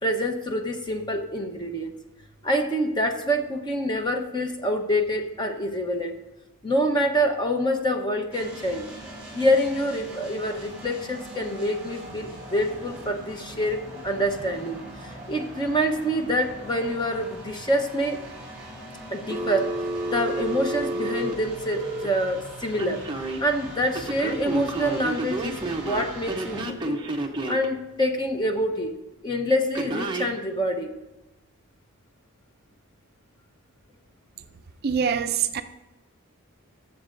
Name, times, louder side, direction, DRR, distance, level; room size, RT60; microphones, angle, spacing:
voice 1, 0.0-1.9 2.4-6.1 6.6-8.9 9.3-18.2 19.1-19.7 20.0-23.0 23.4-25.6 25.9-27.0 27.5-28.9 29.2-30.9, equal, 20° left, 4 dB, 0.9 m, -26 dB
sound 1, 8.3-26.6, right 1 dB, 5° right, 4.0 m, -42 dB
Telephone, 19.3-22.1 22.8-23.4 23.9-27.7 29.8-30.3, right 2 dB, 20° right, 0.8 m, -30 dB
voice 2, 34.8-35.6, right 7 dB, 45° right, 9 dB, 0.4 m, -24 dB
21.0 x 7.2 x 2.6 m, 1.0 s
head